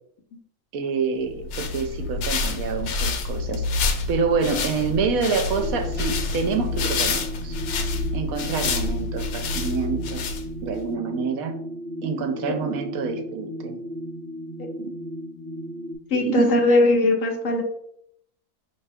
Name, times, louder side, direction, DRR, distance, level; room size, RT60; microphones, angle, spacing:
voice 1, 0.7-3.6 4.1-7.5 8.1-10.2 10.6-11.5 12.0-13.8 14.8-14.9 16.1-16.6, right 5 dB, 70° right, 6 dB, 1.0 m, -27 dB
sound 1, 1.3-10.8, left 3 dB, 80° left, 1.2 m, -28 dB
sound 2, 5.5-16.0, equal, 35° left, 1.3 m, -35 dB
voice 2, 16.1-17.6, left 2 dB, 60° left, 3 dB, 1.0 m, -19 dB
5.4 x 2.9 x 3.4 m, 0.70 s
omnidirectional pair, 1.6 m